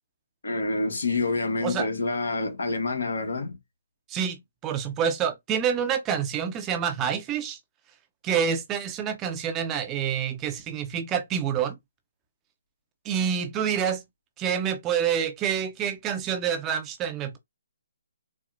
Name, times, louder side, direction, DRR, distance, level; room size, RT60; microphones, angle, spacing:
voice 1, 0.4-3.6, left 3 dB, 80° left, 1.1 m, -27 dB
voice 2, 4.1-7.6 8.2-11.8 13.0-14.0 14.4-17.4, right 8 dB, 20° right, 0.6 m, -27 dB
4.2 x 2.0 x 2.5 m
hypercardioid pair, 145°, 0 cm